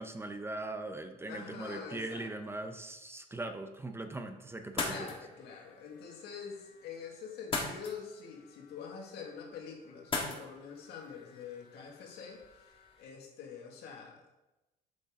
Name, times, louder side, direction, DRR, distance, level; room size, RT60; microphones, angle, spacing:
voice 1, 0.0-5.1, right 2 dB, 15° right, 7 dB, 0.6 m, -40 dB
voice 2, 1.2-2.3 4.8-12.4 13.0-14.2, left 6 dB, 75° left, 1 dB, 1.9 m, -45 dB
sound 1, 4.6-13.0, left 3 dB, 30° left, 1.6 m, -42 dB
7.7 x 6.8 x 3.7 m, 1.0 s
cardioid pair, 110°, 17 cm